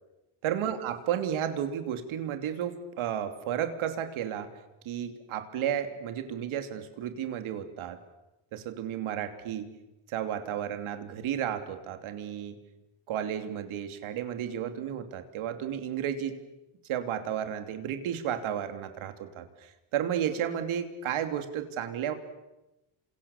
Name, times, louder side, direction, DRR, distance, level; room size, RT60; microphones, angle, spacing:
voice 1, 0.4-4.5 4.8-8.0 8.5-9.7 10.1-12.5 13.1-16.4 16.9-19.4 19.9-22.1, right 9 dB, 80° right, 7 dB, 3.0 m, -32 dB
29.0 x 27.0 x 7.2 m, 0.98 s
cardioid pair, 120°, 48 cm